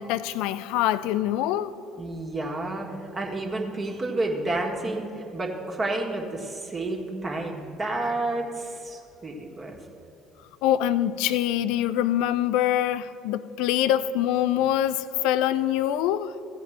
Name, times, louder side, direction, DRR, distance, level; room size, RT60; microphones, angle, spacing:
voice 1, 0.0-1.7 10.6-16.3, left 12 dB, 60° left, 0.4 m, -24 dB
voice 2, 2.0-2.9 3.1-9.8, right 2 dB, 30° right, 1.7 m, -30 dB
15.5 x 5.2 x 7.8 m
figure-of-eight pair, 55°, 0 cm